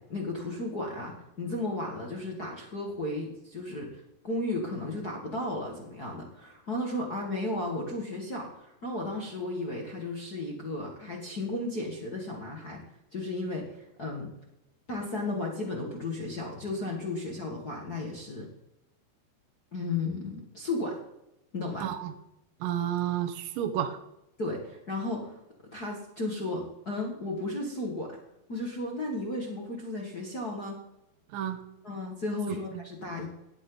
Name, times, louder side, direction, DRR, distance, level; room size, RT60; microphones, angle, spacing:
voice 1, 0.0-12.8 13.1-14.3 14.9-18.5 19.7-21.0 21.5-21.9 24.4-25.3 25.7-28.2 28.5-30.8 31.8-33.3, left 2 dB, 45° left, -1 dB, 1.3 m, -34 dB
voice 2, 21.8-22.1 22.6-24.0 31.3-31.6 32.5-32.6, right 10 dB, 70° right, 5 dB, 2.4 m, -30 dB
17.5 x 11.0 x 4.0 m, 0.86 s
omnidirectional pair, 4.8 m